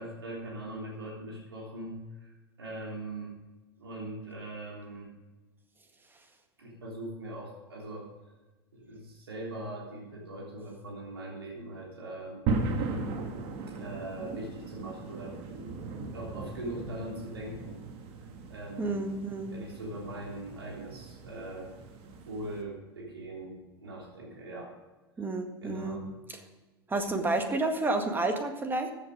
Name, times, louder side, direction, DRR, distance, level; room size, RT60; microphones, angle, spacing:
voice 1, 0.0-3.4 3.8-5.1 6.6-8.1 8.7-12.4 12.8-12.9 13.7-15.7 16.1-17.8 18.5-19.1 19.5-21.7 22.3-24.7 25.6-26.1, right 1 dB, 80° right, -2 dB, 3.4 m, -41 dB
sound 1, 12.5-22.6, right 3 dB, 50° right, 2.0 m, -37 dB
voice 2, 18.8-19.5 25.2-26.0 26.9-28.9, right 2 dB, 15° right, 5 dB, 1.8 m, -30 dB
14.0 x 8.3 x 5.1 m, 1.2 s
figure-of-eight pair, 85°, 13 cm